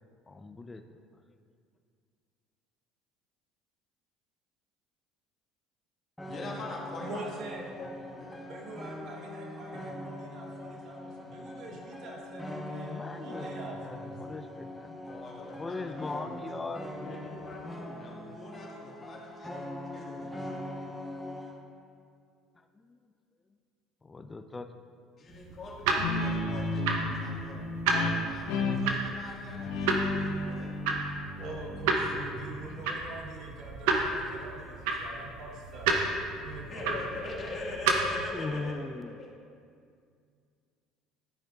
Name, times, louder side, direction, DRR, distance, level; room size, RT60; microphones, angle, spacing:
voice 1, 0.3-1.0 12.7-13.5 13.8-15.0 15.6-17.3 22.6-23.0 24.0-24.7 38.3-39.2, left 3 dB, 20° left, 7 dB, 0.4 m, -40 dB
sound 1, 6.2-21.6, left 1 dB, ahead, 1.0 m, -42 dB
voice 2, 6.3-7.3 7.8-8.7 15.0-16.5 17.0-19.5 19.9-20.5 25.2-30.8 36.4-38.9 39.2-39.3, left 2 dB, 45° left, -3 dB, 1.9 m, -43 dB
voice 3, 6.9-7.7 8.5-14.2 31.3-36.0 36.4-37.2, right 2 dB, 60° right, 0 dB, 1.2 m, -44 dB
sound 2, 25.3-38.2, right 3 dB, 80° right, 0.8 m, -32 dB
Guitar, 26.0-33.1, left 2 dB, 80° left, 0.9 m, -34 dB
13.0 x 5.0 x 2.5 m, 2.2 s
supercardioid pair, 80°, 0 cm